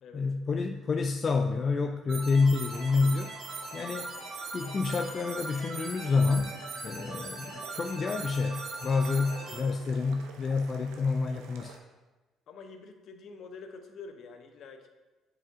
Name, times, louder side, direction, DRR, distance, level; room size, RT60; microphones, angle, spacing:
voice 1, 0.1-3.3 3.7-4.1 4.5-6.6 6.8-11.7, left 4 dB, 45° left, 5 dB, 0.4 m, -28 dB
sound 1, 2.1-9.6, right 3 dB, 65° right, 2.2 m, -40 dB
sound 2, 2.7-11.8, right 5 dB, 85° right, 0.7 m, -51 dB
voice 2, 9.3-9.9 12.5-14.9, left 4 dB, 65° left, 6 dB, 0.8 m, -47 dB
7.6 x 5.0 x 3.6 m, 1.2 s
supercardioid pair, 70°, 0 cm